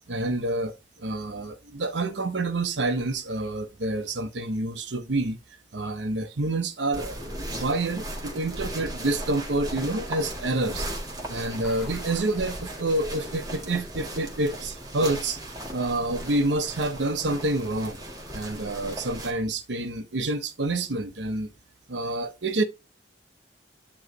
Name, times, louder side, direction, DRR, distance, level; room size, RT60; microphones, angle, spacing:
voice 1, 0.1-5.4 5.7-7.2 7.5-10.9 11.3-15.4 15.7-18.0 18.3-21.5 21.9-22.6, right 2 dB, 85° right, 0.9 m, -28 dB
sound 1, 6.9-19.3, right 1 dB, 20° right, 1.7 m, -37 dB
sound 2, 11.6-16.2, right 1 dB, ahead, 2.7 m, -49 dB
9.5 x 3.2 x 4.0 m
head